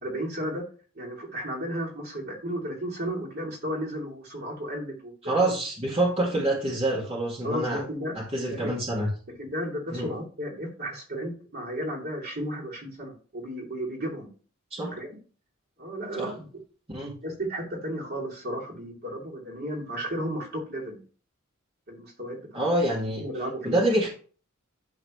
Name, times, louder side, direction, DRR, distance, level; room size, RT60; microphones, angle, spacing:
voice 1, 0.0-0.6 0.9-5.4 7.4-8.1 8.5-8.7 9.3-14.3 14.9-15.1 15.8-16.4 17.2-21.0 21.9-22.6 23.2-23.8, equal, 50° right, -3 dB, 2.8 m, -34 dB
voice 2, 5.2-7.8 8.2-9.1 9.9-10.1 14.7-14.9 16.2-16.3 16.9-17.1 22.5-23.2 23.6-24.1, right 1 dB, 30° right, -5 dB, 2.1 m, -26 dB
11.5 x 3.9 x 3.2 m, 0.39 s
head